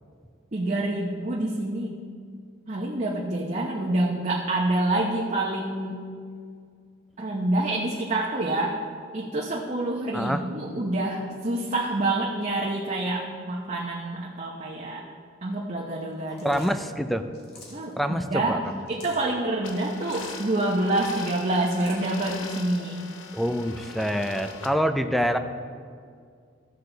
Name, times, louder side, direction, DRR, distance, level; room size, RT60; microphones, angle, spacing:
voice 1, 0.5-2.0 2.7-6.0 7.2-8.8 9.1-15.0 15.4-16.6 17.7-18.6 18.9-23.1, right 2 dB, 40° right, -2 dB, 0.8 m, -27 dB
sound 1, 16.3-16.8 17.3-17.9 18.7-19.3 20.0-20.4 21.4-22.1, left 2 dB, 55° left, 1.9 m, -47 dB
voice 2, 16.4-17.2 18.0-18.8 23.3-25.4, equal, ahead, 8 dB, 0.4 m, -26 dB
sound 2, 19.6-24.7, left 4 dB, 80° left, 0.8 m, -41 dB
15.0 x 6.5 x 3.9 m, 2.2 s
head